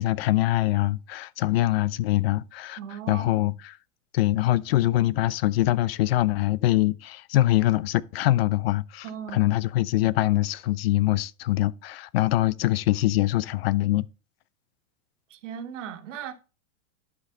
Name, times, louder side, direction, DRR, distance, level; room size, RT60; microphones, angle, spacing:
voice 1, 0.0-2.8 3.1-3.7 4.1-9.1 9.3-14.1, left 16 dB, 50° left, 0.4 m, -23 dB
voice 2, 2.8-3.3 9.0-9.5 15.3-16.3, right 8 dB, 70° right, 1.6 m, -37 dB
11.0 x 5.3 x 3.8 m
supercardioid pair, 165°, 39 cm